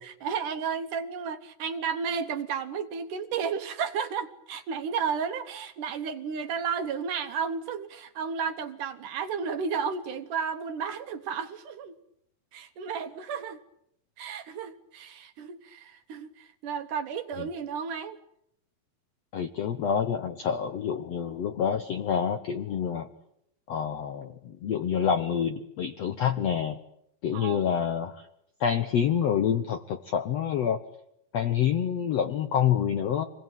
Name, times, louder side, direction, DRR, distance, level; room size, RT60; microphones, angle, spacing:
voice 1, 0.0-11.9 12.5-13.6 14.2-18.2 27.3-27.8, right 6 dB, 65° right, 10 dB, 2.4 m, -33 dB
voice 2, 19.3-23.1 23.7-26.8 27.2-28.2 28.6-30.8 31.3-33.3, left 8 dB, 70° left, 9 dB, 1.5 m, -27 dB
26.5 x 20.5 x 9.2 m, 0.78 s
omnidirectional pair, 4.4 m